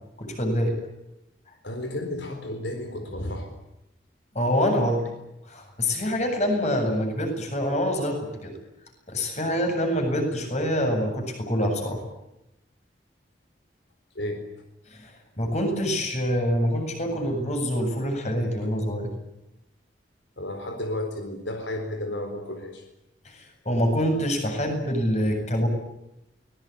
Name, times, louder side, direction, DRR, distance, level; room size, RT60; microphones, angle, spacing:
voice 1, 0.2-0.8 4.3-5.0 5.5-8.5 9.1-12.0 14.9-19.1 23.2-25.7, equal, 35° left, 4 dB, 7.9 m, -26 dB
voice 2, 1.6-3.5 14.1-14.4 20.4-22.9, left 1 dB, 75° left, 5 dB, 4.1 m, -32 dB
24.0 x 20.5 x 9.8 m, 0.90 s
head